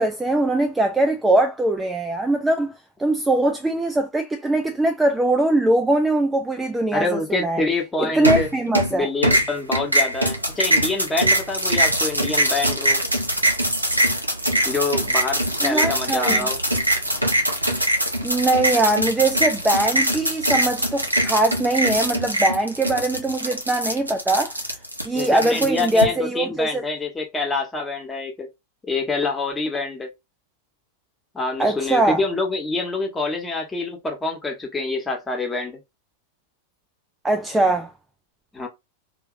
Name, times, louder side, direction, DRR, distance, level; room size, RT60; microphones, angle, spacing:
voice 1, 0.0-2.7 3.0-7.6 8.0-9.1 15.6-16.5 18.2-24.6 25.0-26.8 31.6-32.2 37.2-37.9, right 2 dB, 10° right, 0.3 m, -21 dB
voice 2, 6.9-8.5 8.9-13.0 14.6-16.6 25.1-28.5 28.9-30.1 31.3-35.8 38.5-38.7, left 3 dB, 15° left, 1.1 m, -26 dB
sound 1, 8.2-8.9 9.2-26.0, right 1 dB, 85° right, 0.8 m, -22 dB
2.8 x 2.7 x 2.4 m
figure-of-eight pair, 90°, 0 cm